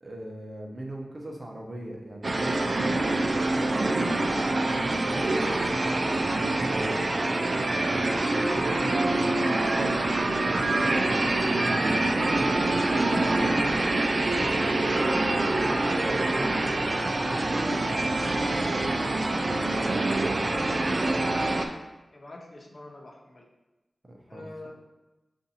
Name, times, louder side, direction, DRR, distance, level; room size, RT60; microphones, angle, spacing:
voice 1, 0.0-7.1 7.6-13.8 14.4-15.6 16.0-17.1 17.5-18.9 19.4-21.2 24.1-24.5, right 1 dB, 30° right, -1 dB, 0.8 m, -41 dB
sound 1, 2.2-21.7, right 2 dB, 50° right, 0.4 m, -25 dB
voice 2, 22.1-23.5 24.3-24.7, left 2 dB, 50° left, 0 dB, 0.6 m, -45 dB
6.9 x 2.6 x 2.8 m, 1.0 s
wide cardioid pair, 105°, 0 cm